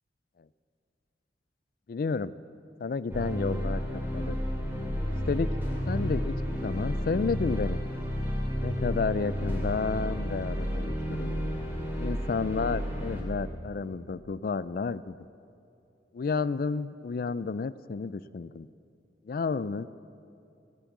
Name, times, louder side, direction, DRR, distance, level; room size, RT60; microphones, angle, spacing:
voice 1, 1.9-2.3 2.8-4.4 5.3-5.5 5.9-7.8 8.6-11.3 12.0-15.2 16.1-18.7 19.3-19.9, left 4 dB, 50° left, 17 dB, 0.3 m, -31 dB
sound 1, 3.1-13.2, equal, 10° right, 2.5 m, -31 dB
18.0 x 9.0 x 7.2 m, 2.6 s
head